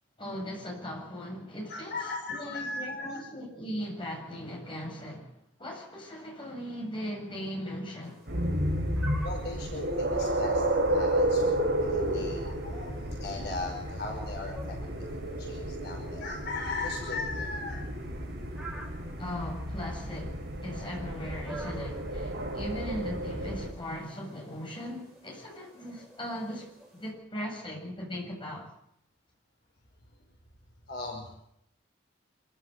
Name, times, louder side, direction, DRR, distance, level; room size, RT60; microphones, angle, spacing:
voice 1, 0.2-2.0 2.3-5.3 5.6-8.2 19.2-26.7 26.9-28.7, equal, 25° left, 8.0 m, -38 dB
voice 2, 1.7-3.2 9.2-17.8 30.9-31.3, left 3 dB, 55° left, 5.1 m, -38 dB
sound 1, 8.0-27.1, right 1 dB, ahead, 7.9 m, -51 dB
sound 2, 8.3-23.7, right 1 dB, 60° right, 5.6 m, -32 dB
25.5 x 16.0 x 8.1 m
head